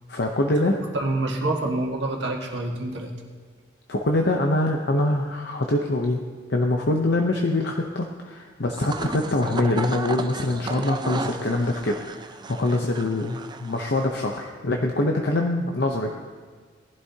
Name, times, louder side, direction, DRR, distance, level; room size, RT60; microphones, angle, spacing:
voice 1, 0.1-0.8 3.9-6.2 6.5-12.0 12.3-16.1, left 2 dB, 60° left, 2 dB, 0.8 m, -24 dB
voice 2, 0.9-3.1, right 2 dB, 65° right, 0 dB, 1.7 m, -27 dB
sound 1, 8.6-14.5, right 3 dB, 25° right, 0.5 m, -34 dB
18.5 x 11.5 x 2.8 m, 1.5 s
head